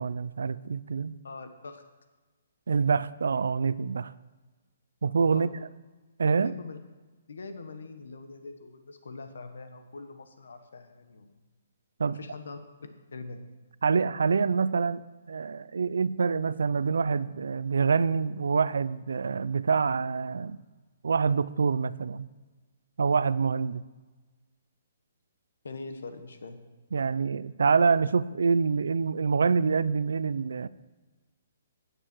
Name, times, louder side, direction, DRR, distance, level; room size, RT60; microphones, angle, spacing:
voice 1, 0.0-1.2 2.7-4.1 5.0-5.5 6.2-6.5 12.0-12.2 13.8-20.6 21.0-22.3 23.0-23.8 26.9-30.7, right 5 dB, 90° right, 18 dB, 0.4 m, -26 dB
voice 2, 1.2-1.8 5.3-5.6 6.4-6.8 7.3-11.3 12.1-12.6 13.1-13.4 25.6-26.6, left 3 dB, 90° left, 8 dB, 1.4 m, -43 dB
17.5 x 6.8 x 4.6 m, 1.3 s
hypercardioid pair, 175°, 0 cm